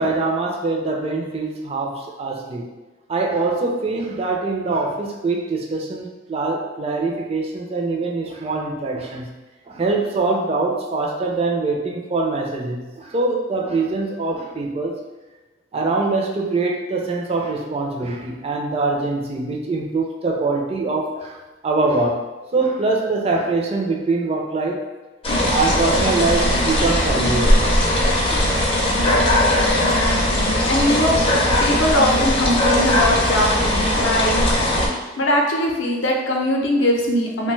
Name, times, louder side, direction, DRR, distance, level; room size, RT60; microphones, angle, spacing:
voice 1, 0.0-2.6 3.1-9.3 9.7-15.0 15.7-21.4 21.6-22.2 22.5-24.8 25.5-27.8 28.3-28.5 29.0-29.3 37.4-37.5, right 3 dB, 30° right, 1 dB, 0.4 m, -23 dB
sound 1, 25.2-34.9, left 1 dB, 30° left, 0.4 m, -19 dB
voice 2, 29.7-31.2 31.6-34.6 35.2-37.5, left 1 dB, 80° left, 0 dB, 0.6 m, -21 dB
2.9 x 2.2 x 3.1 m, 1.2 s
head